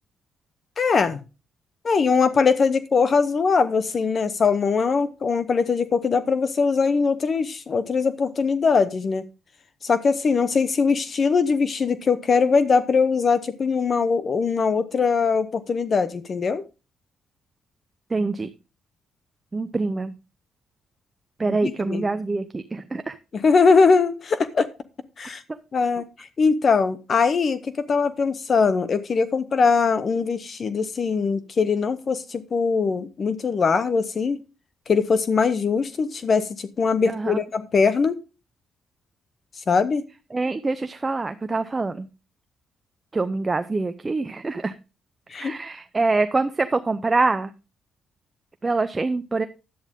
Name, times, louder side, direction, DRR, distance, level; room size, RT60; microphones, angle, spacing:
voice 1, 0.8-1.2 1.8-9.2 9.8-16.6 21.6-22.0 23.3-24.7 25.2-25.4 25.7-34.4 34.9-38.2 39.7-40.0 45.3-45.5, left 5 dB, 40° left, 13 dB, 0.7 m, -21 dB
voice 2, 18.1-18.5 19.5-20.1 21.4-23.2 25.5-25.6 37.1-37.4 40.3-42.1 43.1-44.7 45.4-47.5 48.6-49.5, right 3 dB, 20° right, 9 dB, 0.6 m, -25 dB
11.0 x 8.7 x 3.6 m, 0.31 s
cardioid pair, 115°, 0 cm